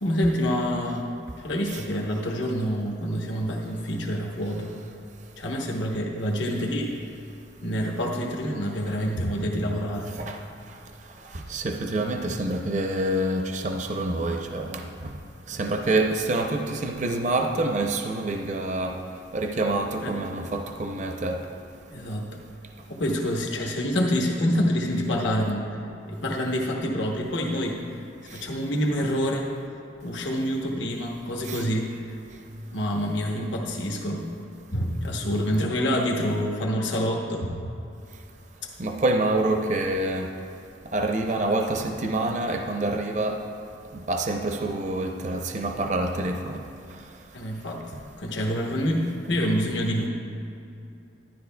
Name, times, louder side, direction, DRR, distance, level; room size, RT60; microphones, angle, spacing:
voice 1, 0.0-4.8 5.4-6.9 7.6-10.2 20.0-20.1 21.9-22.4 22.9-25.8 26.1-27.8 28.3-29.5 30.0-32.0 32.7-34.3 34.7-37.6 47.3-47.8 48.2-50.1, equal, 75° left, -1 dB, 0.9 m, -27 dB
voice 2, 10.0-10.4 10.7-10.8 11.2-15.2 15.5-19.0 19.3-21.5 28.3-28.5 31.4-31.6 38.8-40.3 40.9-43.4 43.9-46.6 46.9-47.0 47.9-48.0, right 2 dB, 40° right, 3 dB, 0.5 m, -27 dB
12.0 x 10.5 x 2.2 m, 2.6 s
head